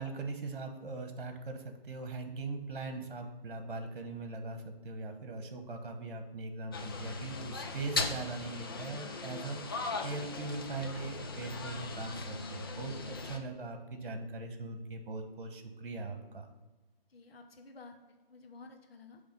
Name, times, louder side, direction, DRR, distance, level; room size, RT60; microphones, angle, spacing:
voice 1, 0.0-9.7 10.0-16.5, right 3 dB, 55° right, 6 dB, 1.3 m, -40 dB
sound 1, 6.7-13.4, left 3 dB, 25° left, 0.4 m, -39 dB
voice 2, 17.1-19.2, left 3 dB, 75° left, 4 dB, 1.1 m, -53 dB
9.6 x 3.5 x 5.3 m, 1.2 s
figure-of-eight pair, 145°, 31 cm